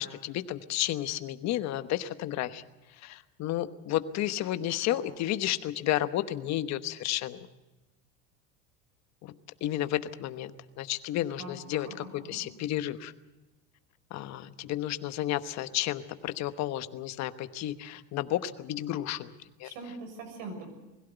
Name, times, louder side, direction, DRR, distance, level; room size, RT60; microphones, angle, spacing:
voice 1, 0.0-2.6 3.0-7.5 9.2-9.3 9.6-13.1 14.1-19.3 19.6-19.7, left 13 dB, 50° left, 11 dB, 1.1 m, -32 dB
voice 2, 11.4-12.4 19.6-20.7, right 3 dB, 60° right, 5 dB, 6.6 m, -43 dB
21.5 x 16.0 x 8.1 m, 1.1 s
supercardioid pair, 135°, 36 cm